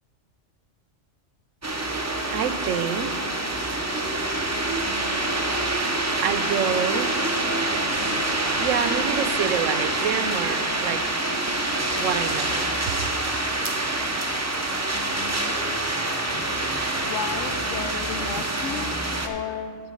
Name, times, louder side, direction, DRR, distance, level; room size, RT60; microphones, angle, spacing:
sound 1, 1.6-19.3, right 2 dB, 20° right, 0.5 m, -26 dB
voice 1, 2.3-3.3 6.2-7.2 8.6-11.0 12.0-12.7, right 7 dB, 90° right, 10 dB, 1.0 m, -28 dB
voice 2, 17.0-19.8, left 7 dB, 70° left, 9 dB, 0.9 m, -33 dB
14.5 x 5.1 x 5.2 m, 2.2 s
omnidirectional pair, 1.3 m